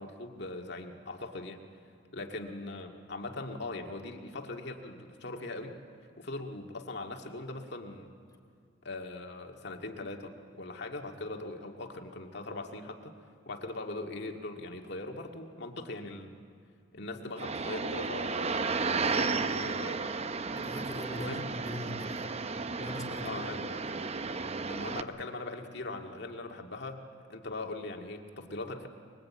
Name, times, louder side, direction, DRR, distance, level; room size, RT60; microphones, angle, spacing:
voice 1, 0.0-1.6 2.1-5.8 6.2-8.2 8.8-13.1 13.5-16.4 16.9-18.5 18.9-20.3 21.1-21.4 23.2-23.8 24.7-27.0 27.3-28.9, left 2 dB, 65° left, 3 dB, 2.0 m, -40 dB
sound 1, 17.4-25.0, right 4 dB, 35° right, 0.7 m, -33 dB
voice 2, 20.5-22.5 22.8-23.4, left 1 dB, 20° left, 3 dB, 2.6 m, -41 dB
23.5 x 22.0 x 8.5 m, 2.2 s
head